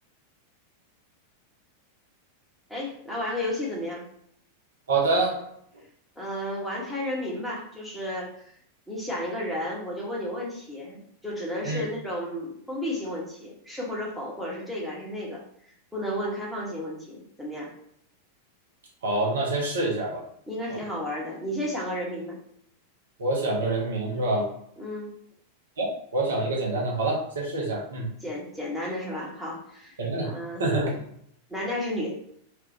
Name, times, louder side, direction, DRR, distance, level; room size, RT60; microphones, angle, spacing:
voice 1, 2.7-4.0 6.2-8.3 8.9-17.7 20.5-22.4 24.8-25.1 27.9-30.0 30.2-30.6 31.5-32.1, left 1 dB, ahead, -5 dB, 1.0 m, -33 dB
voice 2, 4.9-5.5 11.6-11.8 19.0-20.2 20.7-20.8 23.2-24.5 25.8-28.1 30.0-31.0, right 2 dB, 65° right, -2 dB, 0.7 m, -26 dB
2.5 x 2.3 x 3.4 m, 0.69 s
figure-of-eight pair, 90°, 0 cm